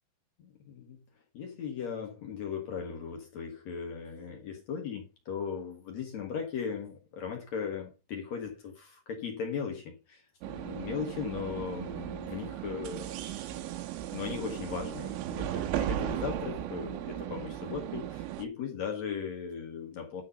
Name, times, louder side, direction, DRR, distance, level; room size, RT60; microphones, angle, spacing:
voice 1, 1.3-13.1 13.5-13.7 14.1-20.2, left 6 dB, 70° left, 1.6 m, -38 dB
sound 1, 10.4-18.5, right 11 dB, 90° right, 3.5 m, -36 dB
10.5 x 3.9 x 5.7 m
omnidirectional pair, 5.5 m